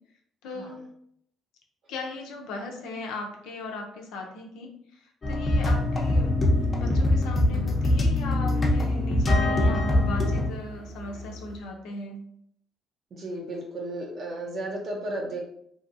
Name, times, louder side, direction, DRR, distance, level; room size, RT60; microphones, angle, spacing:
voice 1, 0.4-0.8 1.9-6.3 6.8-12.2, left 3 dB, 90° left, 1 dB, 0.6 m, -38 dB
sound 1, 5.2-10.5, left 1 dB, 30° left, 0.6 m, -23 dB
sound 2, 5.6-11.6, right 1 dB, 75° right, 0.9 m, -39 dB
voice 2, 13.1-15.4, right 1 dB, 55° right, -1 dB, 0.6 m, -34 dB
2.7 x 2.6 x 2.6 m, 0.69 s
cardioid pair, 100°, 0 cm